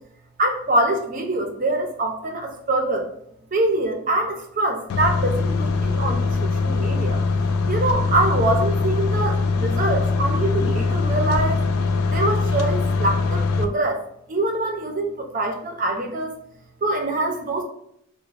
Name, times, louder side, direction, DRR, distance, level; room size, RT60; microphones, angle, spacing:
voice 1, 0.4-3.1 3.5-7.2 7.7-11.6 12.1-14.0 14.3-16.3 16.8-17.6, right 1 dB, 40° right, 3 dB, 0.4 m, -24 dB
sound 1, 4.9-13.6, left 4 dB, 80° left, 0.4 m, -22 dB
3.0 x 2.1 x 3.9 m, 0.73 s
head